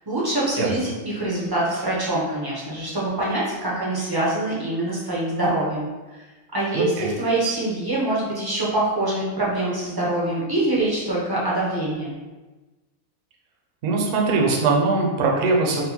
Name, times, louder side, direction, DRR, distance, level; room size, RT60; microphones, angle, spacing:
voice 1, 0.0-5.9 6.5-12.2, right 2 dB, 35° right, -7 dB, 0.3 m, -24 dB
voice 2, 6.7-7.1 13.8-15.8, right 3 dB, 65° right, 0 dB, 0.9 m, -21 dB
4.3 x 2.1 x 2.7 m, 1.2 s
omnidirectional pair, 1.5 m